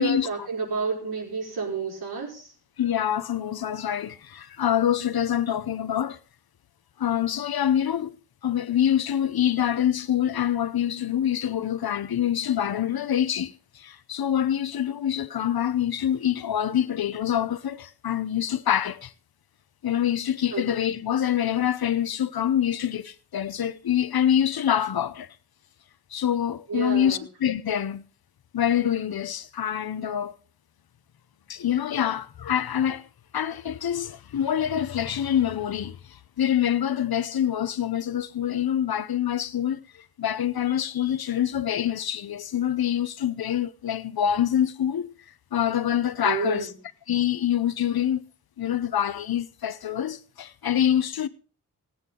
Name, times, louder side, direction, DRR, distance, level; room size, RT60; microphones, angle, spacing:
voice 1, 0.0-2.5 20.5-20.6 26.7-27.2 46.2-46.7, right 4 dB, 85° right, 5.2 m, -30 dB
voice 2, 2.8-6.2 7.0-8.1 8.4-19.1 19.8-25.3 26.1-28.0 28.5-30.3 31.5-33.0 33.3-39.8 40.2-45.1 45.5-46.7 47.1-48.2 48.6-51.3, left 10 dB, 75° left, 0.9 m, -25 dB
18.5 x 8.8 x 3.8 m
wide cardioid pair, 80°, 37 cm